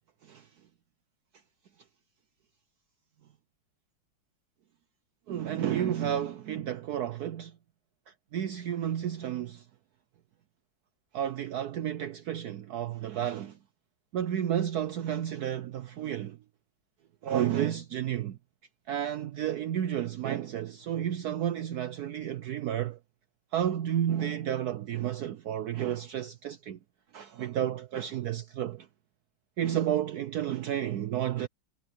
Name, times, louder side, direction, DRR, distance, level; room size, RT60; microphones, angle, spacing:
voice 1, 5.3-7.5 8.3-9.6 11.1-13.5 14.1-16.4 17.2-18.4 18.9-23.0 23.5-26.8 27.1-28.9 29.6-31.5, right 10 dB, 65° right, 1.1 m, -31 dB
omnidirectional pair, 2.0 m